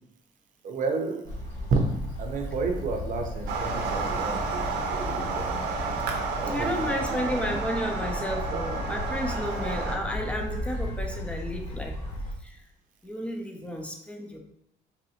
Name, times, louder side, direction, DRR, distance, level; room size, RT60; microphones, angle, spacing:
voice 1, 0.6-1.2 1.7-1.8 2.2-5.7 6.4-6.8 7.1-7.2 8.5-8.6, right 4 dB, 50° right, 3 dB, 0.7 m, -31 dB
sound 1, 1.2-12.3, left 1 dB, 80° left, 1.2 m, -35 dB
sound 2, 3.5-10.0, right 4 dB, 85° right, 0.6 m, -31 dB
Wind instrument woodwind instrument, 5.9-11.0, left 3 dB, 65° left, 0.5 m, -48 dB
voice 2, 6.5-12.0 12.4-12.6 13.0-14.4, equal, 5° left, 2 dB, 0.6 m, -32 dB
4.1 x 2.6 x 2.8 m, 0.75 s
cardioid pair, 110°, 17 cm